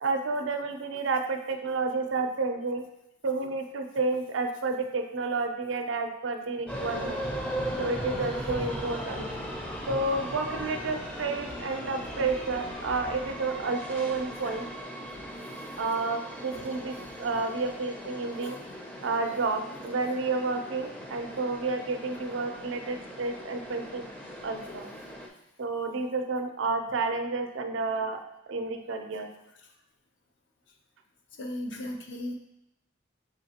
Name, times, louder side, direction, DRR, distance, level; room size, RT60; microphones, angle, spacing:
voice 1, 0.0-2.8 3.2-7.2 7.8-9.3 9.9-14.6 15.8-18.6 19.0-24.1 24.4-24.9 25.6-28.2 28.5-29.3, right 3 dB, 85° right, 5 dB, 0.5 m, -30 dB
sound 1, 6.7-25.3, equal, 5° left, 0.4 m, -38 dB
voice 2, 15.5-15.8 16.5-17.4 18.4-18.6 19.0-19.2 24.6-24.8 26.9-27.0 29.6-29.7 31.3-32.3, left 1 dB, 75° left, 3 dB, 0.6 m, -40 dB
5.1 x 3.2 x 2.8 m, 0.85 s
head